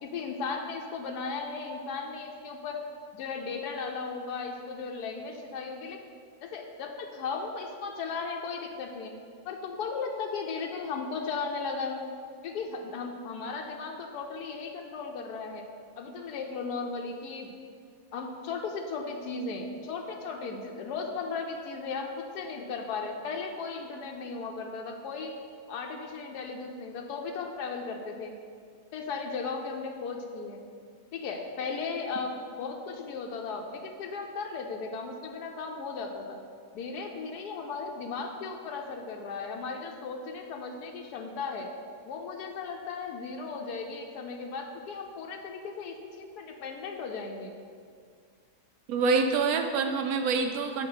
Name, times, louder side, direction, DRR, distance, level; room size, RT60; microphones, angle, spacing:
voice 1, 0.0-2.8 3.1-6.0 6.4-9.1 9.4-12.1 12.4-15.6 16.0-17.5 18.1-25.3 25.7-28.3 28.9-30.6 31.1-32.3 32.6-36.4 36.7-41.7 42.1-47.5, left 4 dB, 85° left, 2 dB, 1.2 m, -36 dB
voice 2, 48.9-50.9, right 4 dB, 70° right, 5 dB, 1.1 m, -26 dB
7.0 x 5.3 x 5.6 m, 2.1 s
omnidirectional pair, 1.7 m